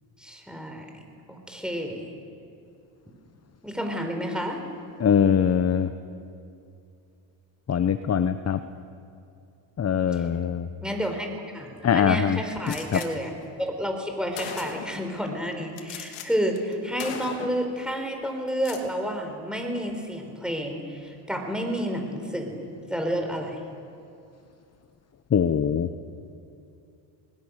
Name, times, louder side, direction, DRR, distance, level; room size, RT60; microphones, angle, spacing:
voice 1, 0.2-1.0 1.3-2.1 3.6-4.6 10.1-10.2 10.8-13.3 13.6-23.6, equal, ahead, 3 dB, 4.6 m, -30 dB
voice 2, 5.0-5.9 7.7-8.6 9.8-10.7 11.8-12.4 12.9-13.0 25.3-25.9, left 8 dB, 30° left, 11 dB, 0.9 m, -22 dB
Gunshot gunfire, 12.7-13.1 13.9-14.0 14.3-15.0 15.8-16.3 16.6-16.7 17.0-17.7 18.5-18.9, left 8 dB, 90° left, 2.7 m, -37 dB
27.0 x 20.5 x 6.6 m, 2.6 s
cardioid pair, 95°, 50 cm